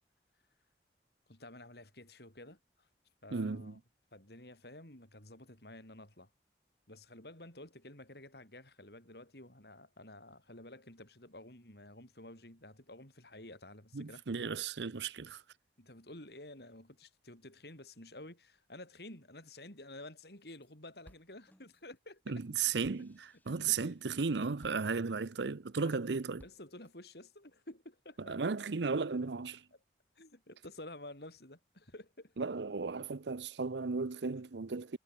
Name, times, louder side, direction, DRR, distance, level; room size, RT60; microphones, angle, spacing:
voice 1, 1.3-2.9 3.2-3.8 4.1-6.3 6.9-14.2 15.8-22.7 23.5-24.0 25.8-26.0 26.4-28.4 30.1-32.3, left 1 dB, 70° left, 6.5 m, -51 dB
voice 2, 3.3-3.7 13.9-15.4 22.3-26.4 28.3-29.6 32.4-35.0, right 4 dB, 85° right, 0.7 m, -35 dB
sound 1, 20.2-20.7 21.0-25.6 26.0-26.9, equal, 10° left, 5.8 m, -63 dB
head